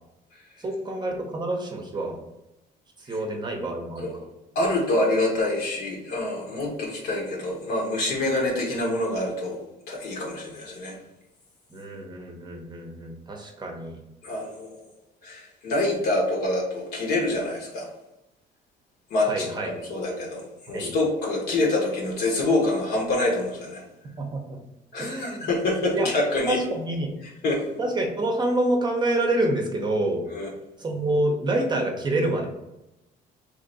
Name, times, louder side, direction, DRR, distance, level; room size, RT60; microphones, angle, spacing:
voice 1, 0.6-2.2 3.1-4.1 11.7-14.0 19.3-19.7 20.7-20.9 24.2-24.6 25.0-25.5 25.9-26.1 26.5-27.2 27.8-30.2 30.8-32.5, right 1 dB, 25° right, 2 dB, 0.7 m, -27 dB
voice 2, 4.5-9.6 9.9-11.0 14.2-14.8 15.2-17.9 19.1-23.8 24.9-26.6 27.4-27.6 30.3-30.5, left 2 dB, 70° left, -2 dB, 1.2 m, -26 dB
2.9 x 2.6 x 3.9 m, 0.92 s
cardioid pair, 110°, 17 cm